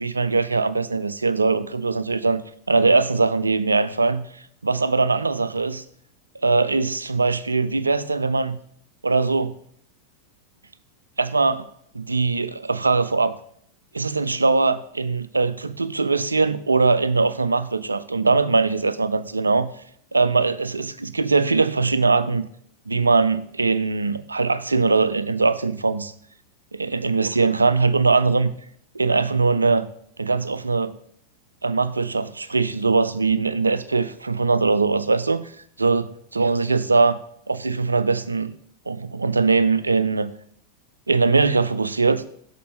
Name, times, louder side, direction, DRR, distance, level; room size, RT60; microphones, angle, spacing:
voice 1, 0.0-2.4 2.7-4.2 4.6-5.8 6.4-8.6 9.0-9.6 11.2-11.7 11.9-13.3 13.9-19.7 20.1-22.5 22.9-26.1 26.7-28.5 28.9-29.9 30.2-31.0 31.6-35.5 35.8-36.1 36.4-37.2 37.5-38.5 38.9-40.3 41.1-42.2, right 4 dB, 80° right, 0.3 m, -21 dB
6.8 x 4.2 x 4.2 m
figure-of-eight pair, 90°, 0 cm